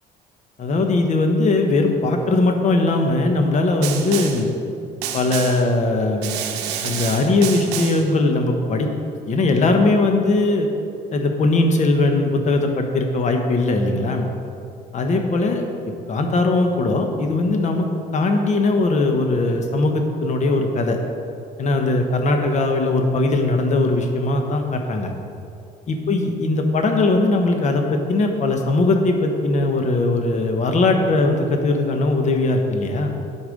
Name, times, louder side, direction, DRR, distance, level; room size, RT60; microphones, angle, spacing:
voice 1, 0.6-4.5 5.1-6.4 6.8-8.9 9.3-10.7 11.1-14.3 14.9-15.6 16.1-21.0 21.6-25.1 25.9-33.2, left 2 dB, 45° left, 4 dB, 1.2 m, -20 dB
Snare drum, 3.8-4.5 5.0-5.7 6.2-8.1, right 9 dB, 85° right, 0.7 m, -29 dB
12.0 x 4.7 x 5.2 m, 2.5 s
cardioid pair, 110°, 17 cm